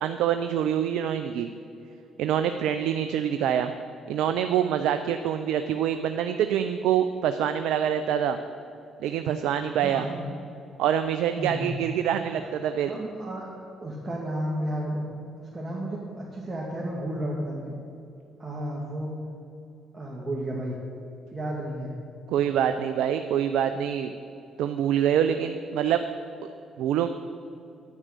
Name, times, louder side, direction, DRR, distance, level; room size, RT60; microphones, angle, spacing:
voice 1, 0.0-1.5 2.2-3.7 4.1-8.4 9.0-10.1 10.8-12.9 22.3-24.1 24.6-26.0 26.8-27.1, right 9 dB, 75° right, 9 dB, 0.5 m, -25 dB
voice 2, 9.8-10.2 11.4-11.8 12.4-12.5 12.9-13.5 13.8-15.0 15.4-17.7 18.4-19.1 19.9-20.8 21.3-21.9, right 1 dB, 25° right, -4 dB, 2.4 m, -32 dB
9.8 x 9.3 x 6.6 m, 2.6 s
hypercardioid pair, 55°, 0 cm